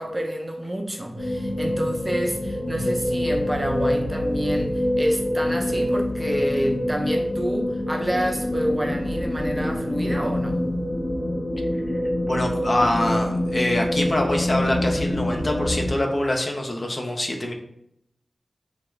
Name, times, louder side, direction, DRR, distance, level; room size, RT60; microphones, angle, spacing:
voice 1, 0.0-10.6, equal, 15° right, 2 dB, 0.4 m, -28 dB
sound 1, 1.1-15.9, left 1 dB, 70° left, 0.7 m, -25 dB
voice 2, 12.2-17.5, left 1 dB, 45° left, 2 dB, 0.4 m, -25 dB
3.3 x 2.3 x 3.0 m, 0.77 s
wide cardioid pair, 95°, 0 cm